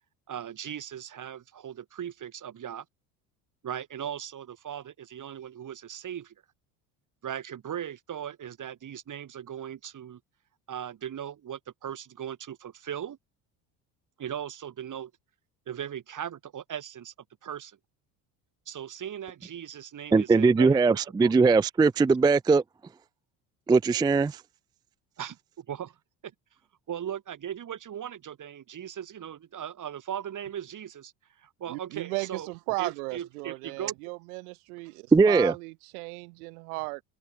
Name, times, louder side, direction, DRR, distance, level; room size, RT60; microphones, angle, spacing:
voice 1, 0.3-2.8 3.6-6.3 7.2-10.2 10.7-13.2 14.2-15.1 15.7-17.1 17.4-17.8 18.7-20.8 21.2-21.3 25.2-25.9 26.2-26.3 26.9-31.1 31.4-32.5 32.8-33.9, right 9 dB, 45° right, 2.8 m, -38 dB
voice 2, 20.1-22.6 23.7-24.4 35.1-35.5, right 4 dB, 10° right, 0.4 m, -20 dB
voice 3, 31.7-37.0, right 27 dB, 85° right, 1.6 m, -36 dB
open air
supercardioid pair, 80°, 43 cm